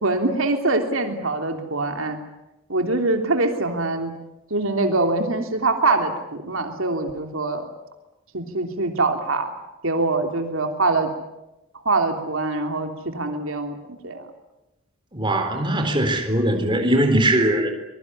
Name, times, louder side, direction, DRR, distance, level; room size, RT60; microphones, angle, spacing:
voice 1, 0.0-2.2 2.7-4.1 4.5-7.7 8.3-9.5 9.8-11.1 11.8-13.8 14.0-14.3, right 2 dB, 65° right, 4 dB, 3.2 m, -23 dB
voice 2, 15.1-17.7, right 1 dB, 20° right, 5 dB, 4.0 m, -20 dB
25.0 x 22.0 x 9.9 m, 0.95 s
head